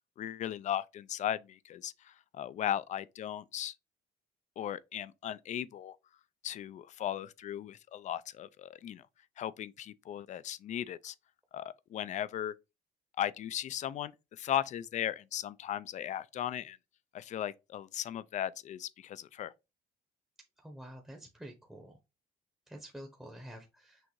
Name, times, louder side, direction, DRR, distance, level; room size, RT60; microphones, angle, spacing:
voice 1, 0.2-3.7 4.6-6.0 6.4-9.0 9.4-11.1 11.5-12.5 13.2-16.8 17.1-19.5, left 11 dB, 45° left, 0.4 m, -37 dB
voice 2, 20.6-21.9 22.7-24.0, equal, 5° right, 0.8 m, -48 dB
6.2 x 2.5 x 3.0 m
cardioid pair, 110°, 17 cm